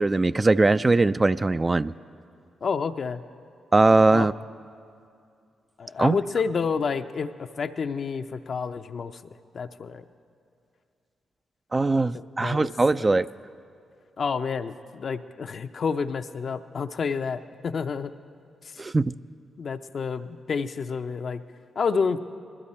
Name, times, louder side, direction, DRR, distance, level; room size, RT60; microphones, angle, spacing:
voice 1, 0.0-1.9 3.7-4.3 6.0-6.2 11.7-13.3 18.8-19.1, right 3 dB, 30° right, 14 dB, 0.3 m, -20 dB
voice 2, 2.6-3.2 4.1-4.3 5.8-9.2 9.5-10.0 12.1-12.7 13.0-13.1 14.2-18.1 18.6-18.8 19.6-21.4 21.8-22.2, left 5 dB, 60° left, 8 dB, 0.6 m, -29 dB
20.5 x 13.5 x 4.3 m, 2.4 s
supercardioid pair, 50°, 0 cm